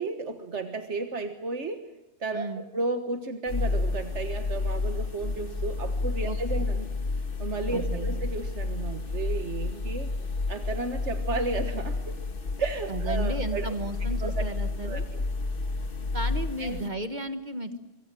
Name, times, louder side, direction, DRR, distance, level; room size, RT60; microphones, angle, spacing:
voice 1, 0.0-1.8 2.2-6.9 7.4-10.1 10.5-12.2 12.6-13.7 14.2-14.4 14.8-15.2 16.6-16.9 17.7-17.8, right 3 dB, 85° right, 6 dB, 1.8 m, -33 dB
voice 2, 2.3-2.6 6.2-6.4 7.7-8.3 12.9-15.0 16.1-17.8, right 2 dB, 40° right, 9 dB, 1.5 m, -34 dB
sound 1, 3.5-16.9, left 3 dB, 50° left, 1.6 m, -30 dB
25.5 x 23.5 x 7.6 m, 0.95 s
omnidirectional pair, 1.2 m